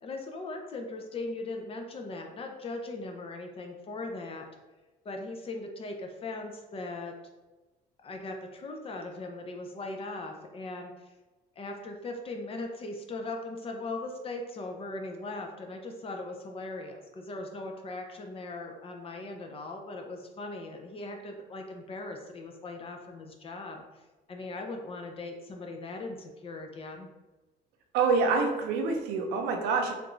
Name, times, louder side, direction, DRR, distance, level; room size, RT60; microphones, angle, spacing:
voice 1, 0.0-4.5 5.0-7.1 8.0-11.1 11.6-24.0 24.3-27.1, left 2 dB, 35° left, 3 dB, 0.5 m, -39 dB
voice 2, 27.9-29.9, right 4 dB, 85° right, 3 dB, 0.6 m, -26 dB
3.3 x 2.5 x 3.1 m, 1.2 s
cardioid pair, 110°, 17 cm